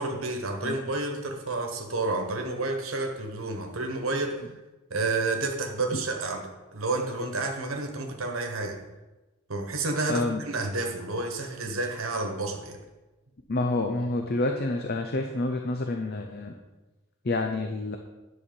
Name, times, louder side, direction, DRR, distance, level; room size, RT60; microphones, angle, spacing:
voice 1, 0.0-4.5 4.9-8.8 9.5-12.8, right 2 dB, 75° right, 3 dB, 1.4 m, -30 dB
voice 2, 10.1-10.4 13.5-16.5 17.2-18.0, left 2 dB, 45° left, 4 dB, 0.7 m, -28 dB
10.5 x 4.3 x 7.0 m, 1.1 s
head